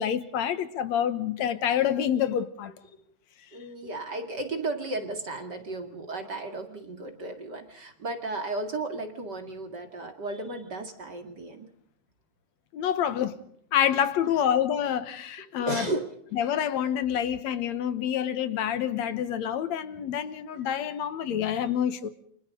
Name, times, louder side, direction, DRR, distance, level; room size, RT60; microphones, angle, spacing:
voice 1, 0.0-2.7 12.7-13.4 13.7-15.9 16.3-22.1, left 9 dB, 70° left, 2.3 m, -27 dB
voice 2, 3.5-11.7 15.7-16.1, right 2 dB, 40° right, 2.4 m, -34 dB
29.5 x 25.5 x 3.8 m
omnidirectional pair, 3.3 m